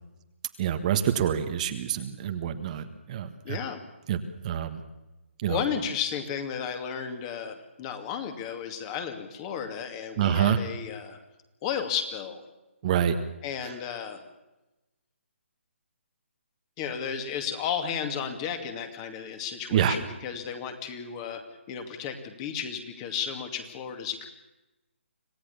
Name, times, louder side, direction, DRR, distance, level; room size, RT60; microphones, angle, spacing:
voice 1, 0.6-3.6 4.1-4.8 5.4-5.6 10.2-10.6 12.8-13.2 13.6-13.7 19.7-20.0, right 9 dB, 35° right, 8 dB, 1.4 m, -27 dB
voice 2, 3.4-3.8 5.4-11.2 11.6-12.4 13.4-14.2 16.8-21.4 21.7-24.3, left 7 dB, 25° left, 7 dB, 2.4 m, -33 dB
26.0 x 16.5 x 7.1 m, 1.0 s
hypercardioid pair, 155°, 7 cm